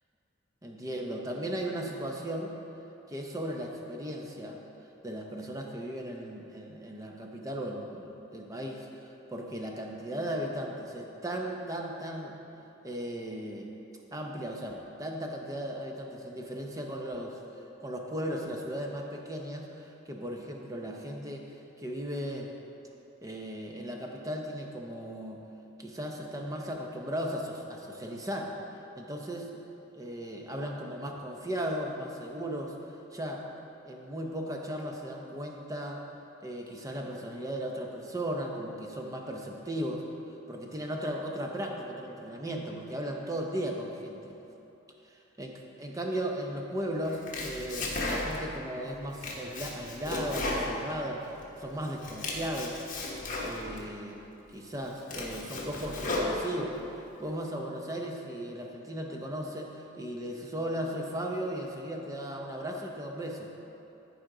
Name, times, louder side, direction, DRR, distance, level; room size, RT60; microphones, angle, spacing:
voice 1, 0.6-2.6 3.1-4.6 5.0-12.4 12.8-13.7 14.1-21.5 21.8-22.5 23.2-25.4 25.8-28.5 29.0-29.5 29.9-32.7 33.1-33.4 33.8-36.0 36.4-40.0 40.5-44.4 45.4-45.5 45.8-51.2 51.6-52.8 53.4-54.2 54.5-56.8 57.2-63.5, equal, 15° right, 1 dB, 0.7 m, -36 dB
Domestic sounds home sounds, 47.0-48.6 48.9-51.5 51.8-53.8 54.4-54.5 54.9-56.8, left 2 dB, 40° left, 1.2 m, -34 dB
14.0 x 5.0 x 3.8 m, 3.0 s
head